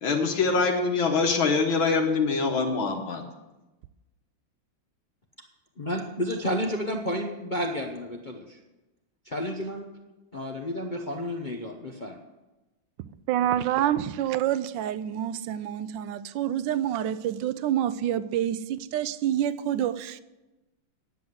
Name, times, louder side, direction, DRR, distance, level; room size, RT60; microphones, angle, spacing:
voice 1, 0.0-3.2, left 4 dB, 85° left, 1 dB, 2.0 m, -24 dB
voice 2, 5.8-8.3 9.3-9.8 10.3-12.2, equal, 45° left, 1 dB, 0.6 m, -31 dB
voice 3, 13.3-20.2, right 11 dB, 75° right, 15 dB, 1.2 m, -27 dB
10.5 x 7.6 x 7.9 m, 1.1 s
omnidirectional pair, 2.1 m